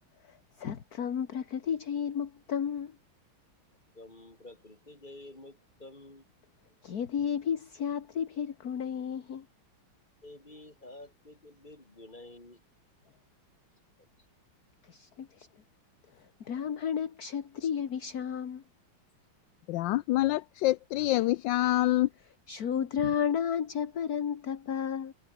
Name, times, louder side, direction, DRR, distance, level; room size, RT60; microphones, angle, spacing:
voice 1, 0.3-2.9 6.8-9.4 14.9-15.5 16.4-18.6 22.5-25.1, left 8 dB, 50° left, 1.8 m, -32 dB
voice 2, 3.9-6.2 10.2-12.6, left 2 dB, 20° left, 4.8 m, -50 dB
voice 3, 19.7-22.1, left 16 dB, 75° left, 1.2 m, -26 dB
omnidirectional pair, 2.2 m